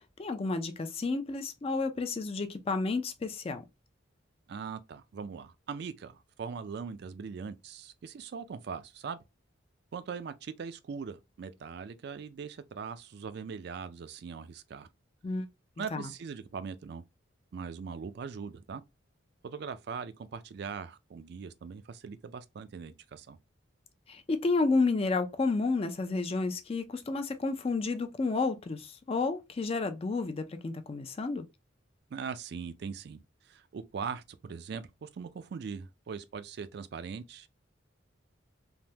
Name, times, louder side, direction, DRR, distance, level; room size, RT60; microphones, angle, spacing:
voice 1, 0.2-3.6 15.2-15.5 15.9-16.1 24.1-31.5, left 3 dB, 30° left, 0.4 m, -31 dB
voice 2, 4.5-9.2 9.9-14.9 15.8-17.0 17.5-18.8 19.4-23.4 32.1-33.2 33.4-37.6, right 6 dB, 55° right, 0.3 m, -41 dB
3.4 x 2.1 x 2.7 m
head